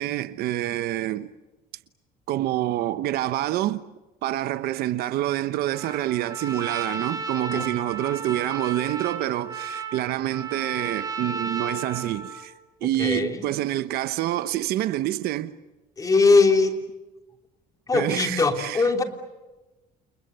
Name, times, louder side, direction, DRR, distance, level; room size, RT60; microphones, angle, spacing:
voice 1, 0.0-1.3 2.3-3.8 4.2-12.5 12.8-15.6 17.9-18.8, right 14 dB, 65° right, 1.1 m, -27 dB
Trumpet, 5.7-12.5, right 4 dB, 20° right, 4.0 m, -34 dB
voice 2, 13.0-13.5 16.0-16.7 17.9-19.0, left 3 dB, 20° left, 3.2 m, -20 dB
29.5 x 29.0 x 6.9 m
cardioid pair, 150°, 17 cm